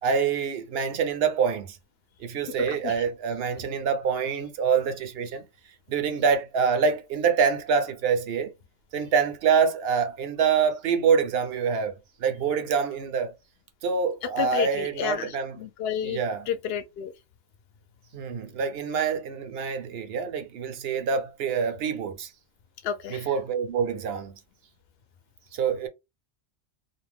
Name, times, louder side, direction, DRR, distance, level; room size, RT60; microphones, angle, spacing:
voice 1, 0.0-1.8 2.2-5.4 5.9-8.5 8.9-11.9 12.2-13.3 13.8-15.6 16.0-16.5 18.1-22.3 23.1-24.3 25.5-25.9, right 6 dB, 65° right, 0.8 m, -26 dB
voice 2, 2.6-3.0 14.2-16.2 16.5-17.1 22.8-23.3, left 8 dB, 65° left, 0.8 m, -31 dB
2.6 x 2.1 x 3.2 m
omnidirectional pair, 1.2 m